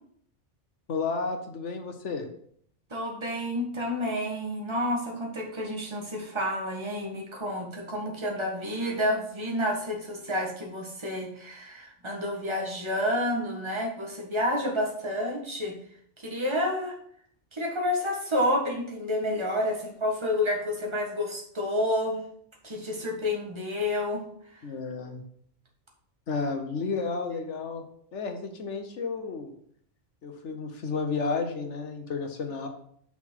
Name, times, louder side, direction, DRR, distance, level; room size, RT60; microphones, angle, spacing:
voice 1, 0.9-2.3 24.6-25.2 26.3-27.8 28.1-29.5 30.2-32.7, left 4 dB, 70° left, 5 dB, 1.3 m, -32 dB
voice 2, 2.9-15.7 16.2-17.0 17.5-22.2 22.6-24.6, left 1 dB, 25° right, 0 dB, 1.6 m, -29 dB
5.9 x 5.8 x 4.5 m, 0.64 s
omnidirectional pair, 1.3 m